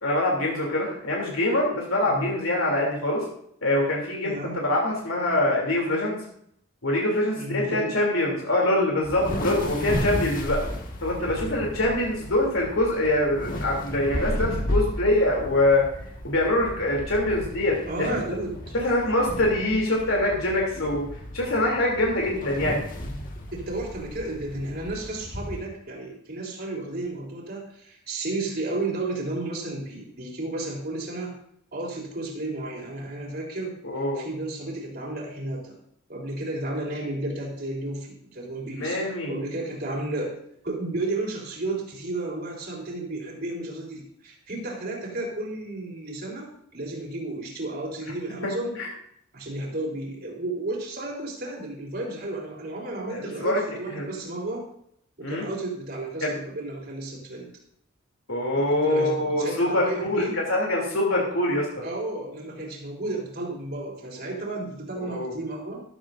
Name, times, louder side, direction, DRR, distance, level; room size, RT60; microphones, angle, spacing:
voice 1, 0.0-3.2 3.6-6.2 6.8-10.6 11.0-15.8 16.2-17.8 18.7-21.1 21.3-22.8 33.8-34.2 38.8-39.4 48.8-48.9 53.1-53.6 53.9-54.1 55.2-55.4 56.2-56.3 58.3-61.7 65.0-65.3, left 1 dB, 75° left, -2 dB, 3.0 m, -24 dB
voice 2, 4.2-4.6 7.3-8.0 9.6-10.0 17.9-18.6 23.5-31.4 31.7-33.8 34.1-35.8 36.1-39.0 39.3-40.4 40.6-48.8 49.3-54.7 55.2-57.5 58.5-60.4 61.8-65.8, right 2 dB, 50° right, -1 dB, 3.7 m, -33 dB
sound 1, 9.0-25.6, equal, 40° left, 1.7 m, -34 dB
14.0 x 12.5 x 2.6 m, 0.69 s
head